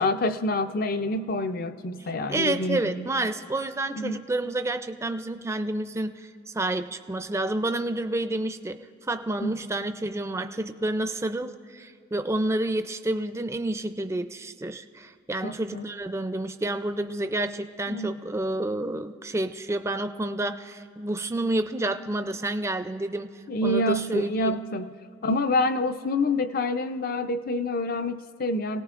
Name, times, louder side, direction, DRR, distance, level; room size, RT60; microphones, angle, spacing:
voice 1, 0.0-3.1 4.0-4.2 9.4-9.5 15.4-15.9 17.9-18.2 23.5-24.9 25.2-28.8, left 2 dB, 50° left, 10 dB, 0.5 m, -27 dB
voice 2, 2.3-24.6, right 2 dB, 15° right, 9 dB, 0.4 m, -29 dB
27.0 x 18.0 x 2.5 m, 2.4 s
head